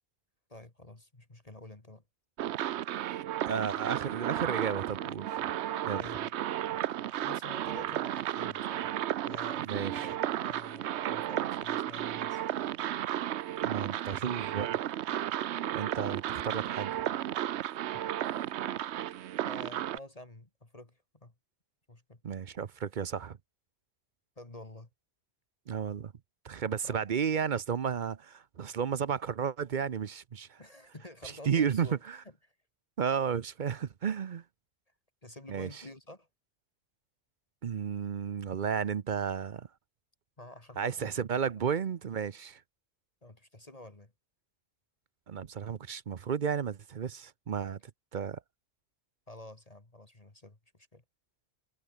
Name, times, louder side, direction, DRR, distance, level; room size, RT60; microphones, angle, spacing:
voice 1, 0.5-2.0 5.9-6.3 7.2-9.0 9.2-12.5 19.4-21.3 21.9-22.2 24.4-24.9 26.8-27.1 30.6-32.0 32.4-32.5 35.2-36.3 40.4-41.4 43.2-44.1 49.3-50.6 50.9-51.0, left 1 dB, 35° left, 2.4 m, -49 dB
sound 1, 2.4-20.0, right 12 dB, 80° right, 0.9 m, -34 dB
voice 2, 3.5-5.5 5.8-6.0 9.7-10.1 13.6-14.8 15.7-17.0 22.2-23.4 25.7-26.1 26.4-30.6 31.5-32.2 33.0-34.4 35.5-35.8 37.6-39.7 40.8-42.6 45.3-47.8 48.1-48.4, right 7 dB, 50° right, 0.8 m, -33 dB
omnidirectional pair, 1.1 m